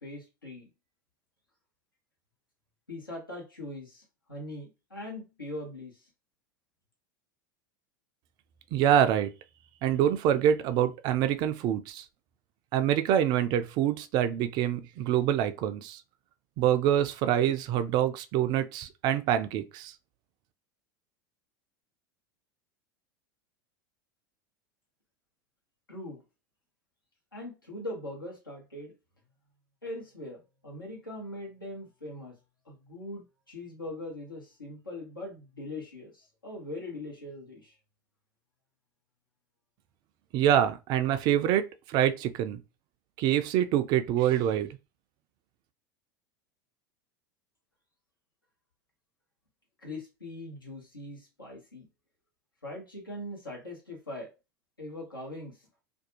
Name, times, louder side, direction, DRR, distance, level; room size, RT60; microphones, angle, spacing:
voice 1, 0.0-0.7 2.9-6.0 25.9-26.2 27.3-28.9 29.8-32.4 32.6-37.7 49.8-51.9 52.6-54.3 54.8-55.6, left 1 dB, 85° left, 1.1 m, -41 dB
voice 2, 8.7-9.3 9.8-12.0 12.7-16.0 16.6-19.9 40.3-42.6 43.2-44.8, right 10 dB, 40° right, 0.3 m, -26 dB
2.6 x 2.2 x 2.7 m
figure-of-eight pair, 80°, 11 cm